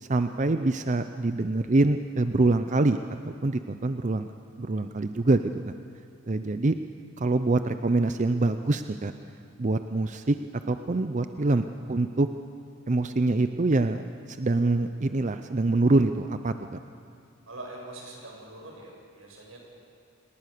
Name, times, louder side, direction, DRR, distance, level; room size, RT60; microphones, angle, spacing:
voice 1, 0.0-3.0 3.2-4.2 4.6-5.7 6.3-6.7 7.2-9.1 9.6-10.4 10.7-12.3 12.9-14.0 14.3-16.5, right 2 dB, 35° right, 9 dB, 0.6 m, -25 dB
voice 2, 17.5-19.6, right 2 dB, 90° right, -1 dB, 7.1 m, -43 dB
28.0 x 19.5 x 6.7 m, 2.4 s
head